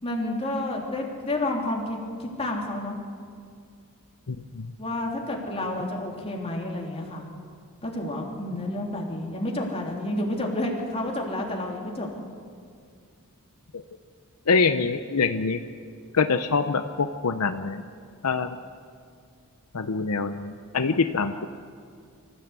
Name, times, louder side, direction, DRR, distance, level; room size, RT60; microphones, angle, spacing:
voice 1, 0.0-3.0 4.8-7.2 7.8-12.1, left 1 dB, 25° left, -1 dB, 3.4 m, -30 dB
voice 2, 4.3-4.7 14.5-15.6 16.1-17.8 18.2-18.6 19.7-21.5, left 4 dB, 80° left, 8 dB, 0.8 m, -25 dB
25.5 x 14.5 x 8.2 m, 2.2 s
head